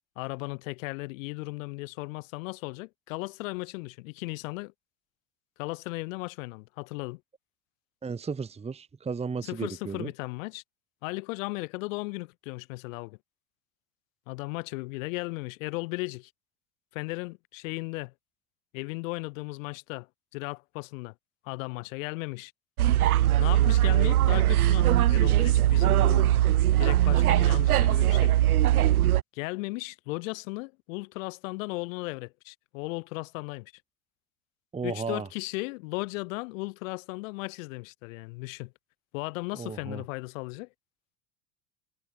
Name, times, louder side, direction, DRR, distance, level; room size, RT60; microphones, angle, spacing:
voice 1, 0.2-4.7 5.6-7.2 9.4-10.6 11.0-13.2 14.3-16.3 16.9-18.1 18.7-20.1 20.3-21.1 21.4-22.5 23.4-26.4 26.8-28.4 29.3-33.7 34.8-38.7 39.1-40.7, left 25 dB, 60° left, 3.6 m, -36 dB
voice 2, 8.0-10.1 34.7-35.3 39.5-40.0, right 5 dB, 15° right, 1.2 m, -34 dB
sound 1, 22.8-29.2, right 13 dB, 75° right, 0.7 m, -21 dB
figure-of-eight pair, 70°, 45 cm